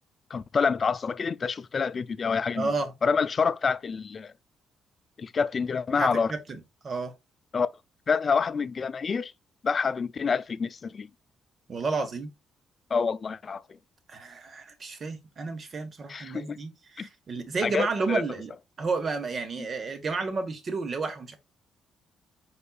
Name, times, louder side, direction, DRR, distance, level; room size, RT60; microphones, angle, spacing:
voice 1, 0.3-2.7 3.0-4.3 5.2-6.3 7.5-7.7 8.1-9.3 9.6-11.1 12.9-13.6 16.1-16.6 17.0-17.1 17.6-18.2, left 5 dB, 40° left, 0.4 m, -27 dB
voice 2, 2.5-2.9 6.0-7.1 11.7-12.3 14.1-18.5 18.8-21.4, right 4 dB, 45° right, 1.3 m, -31 dB
5.2 x 4.3 x 2.3 m
cardioid pair, 90°, 0 cm